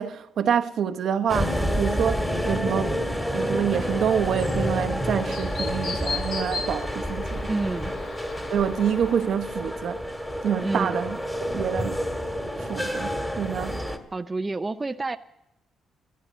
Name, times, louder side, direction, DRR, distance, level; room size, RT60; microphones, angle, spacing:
voice 1, 0.0-3.0 3.3-7.5 8.5-10.0 10.4-11.2 11.5-12.0 12.6-13.8, right 8 dB, 65° right, 0.8 m, -27 dB
sound 1, 1.3-14.0, equal, 5° left, 1.7 m, -29 dB
Chirp tweet, 3.8-9.3, left 4 dB, 75° left, 2.5 m, -38 dB
voice 2, 7.5-8.0 10.6-11.0 14.1-15.2, right 3 dB, 25° right, 0.5 m, -29 dB
14.0 x 13.0 x 7.3 m
cardioid pair, 90°, 0 cm